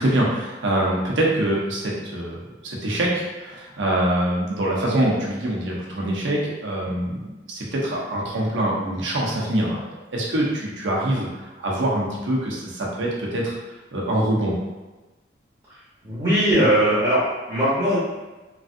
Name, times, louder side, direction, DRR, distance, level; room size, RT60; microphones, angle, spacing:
voice 1, 0.0-11.3 11.6-13.6 13.9-14.5, right 1 dB, 85° right, -3 dB, 0.7 m, -24 dB
voice 2, 16.0-18.0, right 1 dB, 20° right, -11 dB, 0.8 m, -20 dB
3.1 x 2.6 x 2.5 m, 1.2 s
head